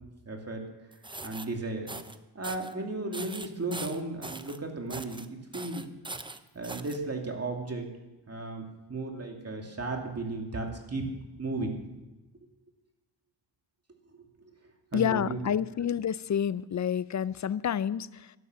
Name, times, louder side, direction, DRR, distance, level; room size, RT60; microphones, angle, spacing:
voice 1, 0.3-0.6 1.2-1.9 2.3-5.8 6.5-7.9 8.3-11.1 11.4-11.8 14.4-14.5 14.9-15.4, right 2 dB, 30° right, 2 dB, 2.5 m, -35 dB
sound 1, 0.9-1.5 1.9-2.2 2.4-2.7 3.1-4.6 4.9-5.3 5.5-7.0, right 2 dB, 10° right, 0.6 m, -41 dB
voice 2, 14.9-18.3, left 8 dB, 40° left, 18 dB, 0.4 m, -29 dB
12.5 x 11.5 x 6.8 m, 1.1 s
wide cardioid pair, 120°, 48 cm